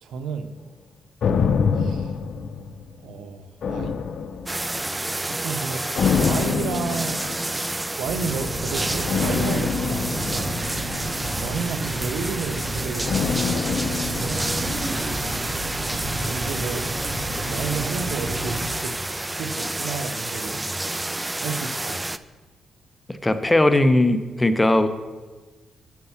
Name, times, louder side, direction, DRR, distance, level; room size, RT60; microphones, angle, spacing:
voice 1, 0.0-0.5 1.8-2.1 3.0-4.0 5.3-5.8 6.2-7.2 8.0-10.5 11.1-13.4 14.0-14.5 16.2-16.9 17.5-19.0 19.4-21.1 21.4-22.2, right 5 dB, 85° right, 9 dB, 0.7 m, -32 dB
sound 1, 1.2-3.1 3.6-4.9 5.9-7.7 9.1-11.5 13.1-15.2 15.5-15.6, left 6 dB, 65° left, 0.6 m, -26 dB
sound 2, 4.5-22.2, right 2 dB, 15° right, 0.4 m, -29 dB
sound 3, 8.0-18.7, right 1 dB, 50° right, 1.9 m, -32 dB
voice 2, 23.2-24.9, left 1 dB, 15° left, 10 dB, 0.8 m, -18 dB
10.5 x 5.5 x 5.8 m, 1.3 s
cardioid pair, 70°, 0 cm